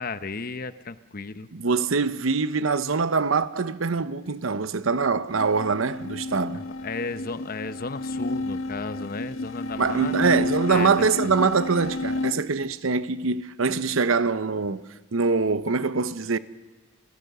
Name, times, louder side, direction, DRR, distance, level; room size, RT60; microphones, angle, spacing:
voice 1, 0.0-1.5 6.5-10.3 10.7-11.3, left 3 dB, 45° left, 0.9 m, -34 dB
voice 2, 1.5-6.6 9.8-16.4, right 4 dB, 80° right, 0.9 m, -24 dB
sound 1, 5.3-12.3, left 2 dB, 85° left, 1.6 m, -31 dB
30.0 x 16.5 x 6.7 m
head